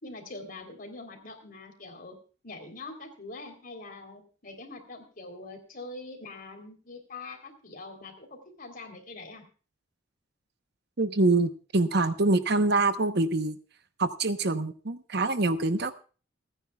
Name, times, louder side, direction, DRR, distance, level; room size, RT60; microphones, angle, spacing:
voice 1, 0.0-2.2 2.4-9.5, left 2 dB, 45° left, 5 dB, 3.6 m, -44 dB
voice 2, 11.0-13.5 14.0-16.0, right 2 dB, 55° right, 10 dB, 1.0 m, -25 dB
29.0 x 10.0 x 2.3 m, 0.38 s
head